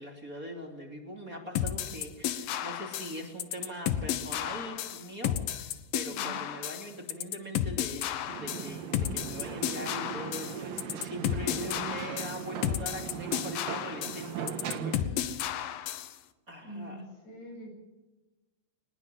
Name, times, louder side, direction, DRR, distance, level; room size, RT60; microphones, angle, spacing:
voice 1, 0.0-15.0 16.5-17.0, right 1 dB, 25° right, 1 dB, 2.4 m, -42 dB
sound 1, 1.6-16.1, left 11 dB, 85° left, 2.0 m, -33 dB
voice 2, 6.1-6.4 14.9-15.5 16.6-17.8, equal, 60° left, 2 dB, 10.0 m, -45 dB
sound 2, 8.3-15.0, right 8 dB, 60° right, 2.6 m, -39 dB
22.5 x 20.5 x 7.7 m, 1.1 s
omnidirectional pair, 5.6 m